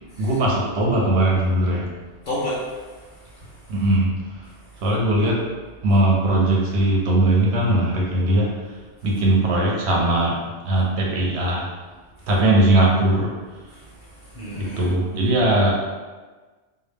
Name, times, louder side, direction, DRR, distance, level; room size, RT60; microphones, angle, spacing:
voice 1, 0.2-1.9 3.7-4.1 4.8-5.4 5.8-8.5 9.0-11.7 12.3-13.3 14.5-15.9, right 1 dB, 70° right, -3 dB, 0.8 m, -19 dB
voice 2, 2.3-2.8 3.4-3.5 14.0-14.9, equal, 55° left, -7 dB, 0.6 m, -30 dB
2.1 x 2.0 x 3.2 m, 1.3 s
omnidirectional pair, 1.2 m